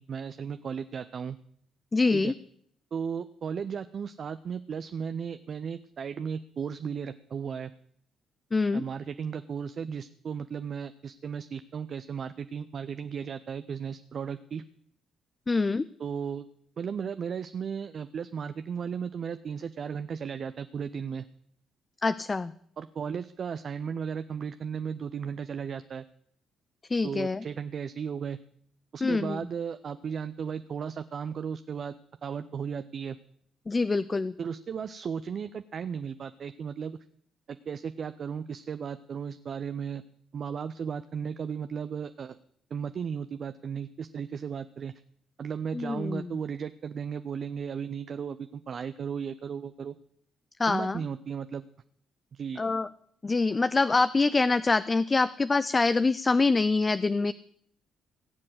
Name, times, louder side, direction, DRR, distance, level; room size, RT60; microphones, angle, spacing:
voice 1, 0.0-1.4 2.1-2.3 2.9-7.7 8.7-14.6 16.0-16.4 16.8-21.2 22.8-26.0 27.0-28.4 28.9-31.9 32.2-33.2 34.4-37.0 37.5-40.0 40.3-42.3 42.7-44.9 45.4-49.9 50.7-51.6 52.3-52.6, right 7 dB, 55° right, 11 dB, 0.6 m, -35 dB
voice 2, 1.9-2.3 8.5-8.8 15.5-15.9 22.0-22.5 26.9-27.4 29.0-29.4 33.7-34.3 45.7-46.3 50.6-51.0 52.6-52.9 53.2-57.3, left 3 dB, 30° left, 15 dB, 0.5 m, -25 dB
17.0 x 7.6 x 8.0 m, 0.66 s
hypercardioid pair, 45°, 0 cm